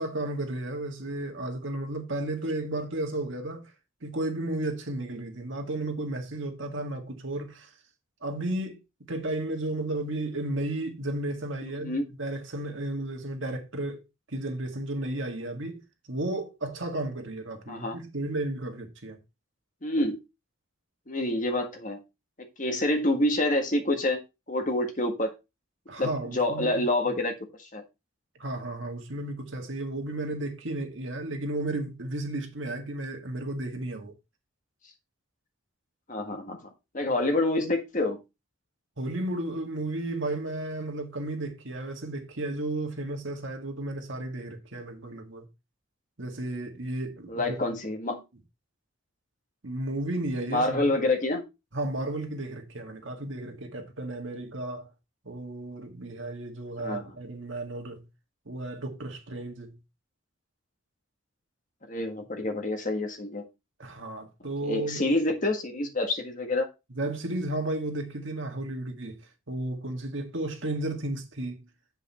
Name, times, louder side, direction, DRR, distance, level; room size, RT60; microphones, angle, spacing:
voice 1, 0.0-3.7 4.0-7.7 8.2-14.0 14.3-15.8 16.1-19.2 25.9-27.2 28.4-34.1 39.0-45.5 46.2-47.6 49.6-50.9 51.7-54.9 55.3-58.0 58.5-59.8 63.8-65.0 66.9-69.2 69.5-71.6, right 2 dB, 70° right, 1.9 m, -33 dB
voice 2, 17.7-18.0 19.8-20.2 21.1-22.0 22.6-24.2 24.5-25.3 26.0-27.3 27.7-27.8 36.1-36.6 36.9-38.2 47.3-48.2 50.5-51.4 56.8-57.0 61.9-63.4 64.6-66.7, left 2 dB, 40° left, 1.6 m, -27 dB
8.0 x 5.5 x 4.2 m
head